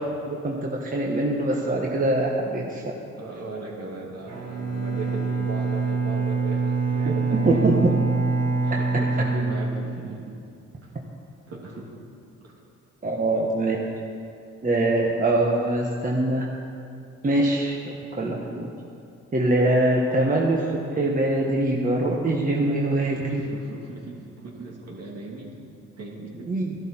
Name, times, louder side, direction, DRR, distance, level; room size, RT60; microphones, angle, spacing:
voice 1, 0.3-2.9 7.4-7.7 13.0-13.8 14.6-16.5 17.2-18.7 19.3-23.4 26.5-26.8, right 2 dB, 25° right, -2 dB, 1.4 m, -23 dB
voice 2, 3.2-8.0 8.6-10.3 10.8-10.9 11.5-12.0 12.4-12.5 13.0-13.2 23.3-25.6 26.0-26.6, right 3 dB, 55° right, -2 dB, 2.8 m, -37 dB
Bowed string instrument, 4.3-10.3, right 4 dB, 70° right, 3.9 m, -25 dB
14.0 x 12.0 x 4.5 m, 2.5 s
cardioid pair, 90°, 30 cm